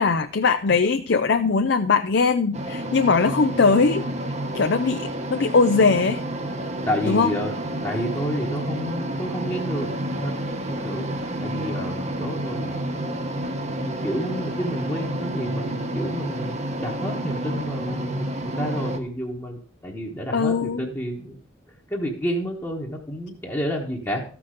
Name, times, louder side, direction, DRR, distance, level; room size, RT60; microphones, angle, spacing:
voice 1, 0.0-4.1 4.5-6.2 7.1-7.3 20.3-20.9, left 4 dB, 55° left, 8 dB, 0.5 m, -20 dB
sound 1, 2.5-19.0, right 1 dB, 35° right, 1.0 m, -29 dB
voice 2, 6.9-7.5 7.8-9.9 10.2-10.3 10.7-12.8 13.8-21.4 21.9-24.2, equal, 15° left, -2 dB, 1.2 m, -30 dB
14.0 x 6.0 x 4.9 m, 0.43 s
head